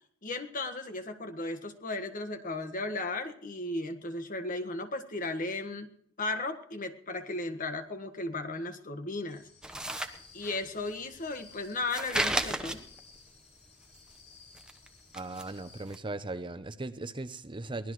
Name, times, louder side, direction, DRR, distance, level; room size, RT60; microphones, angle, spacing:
voice 1, 0.2-5.9 6.2-9.4 10.3-12.8, left 2 dB, 40° left, 7 dB, 1.6 m, -35 dB
sound 1, 9.3-15.8, left 5 dB, 60° left, 7.4 m, -57 dB
sound 2, 9.6-10.8 11.0-13.2 13.5-14.9 15.1-15.6 15.9-16.0, right 1 dB, 5° right, 1.1 m, -34 dB
voice 2, 15.1-17.9, right 2 dB, 25° right, 10 dB, 0.7 m, -38 dB
23.5 x 17.5 x 3.2 m, 0.63 s
head